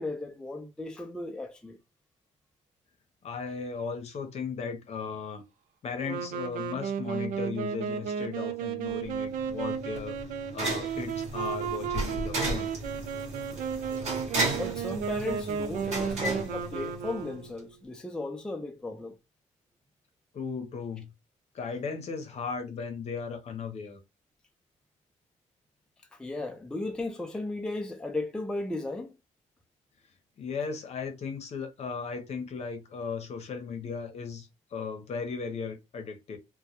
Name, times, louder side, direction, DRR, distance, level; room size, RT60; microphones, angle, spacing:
voice 1, 0.0-1.8 14.5-19.2 26.2-29.1, left 2 dB, 5° left, 0.3 m, -35 dB
voice 2, 3.2-5.4 5.8-10.2 10.5-12.7 20.3-21.1 21.5-24.0 30.4-36.4, left 5 dB, 55° left, 0.7 m, -36 dB
Wind instrument woodwind instrument, 6.0-17.7, right 7 dB, 85° right, 0.4 m, -34 dB
sound 1, 9.0-17.3, right 2 dB, 55° right, 1.0 m, -35 dB
2.2 x 2.1 x 2.8 m
cardioid pair, 110°, 14 cm